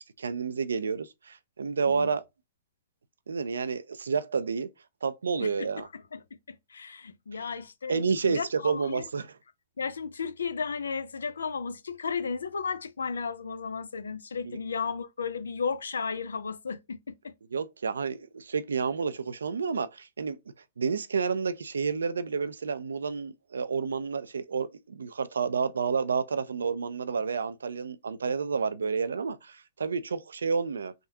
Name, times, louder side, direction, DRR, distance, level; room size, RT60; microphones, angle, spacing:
voice 1, 0.2-2.2 3.3-4.7 5.0-5.9 7.9-9.3 14.5-14.6 17.5-20.4 20.8-30.9, right 5 dB, 90° right, 0.3 m, -30 dB
voice 2, 5.4-9.1 9.8-17.3, left 5 dB, 90° left, 0.4 m, -34 dB
3.5 x 2.2 x 2.7 m
hypercardioid pair, 135°, 0 cm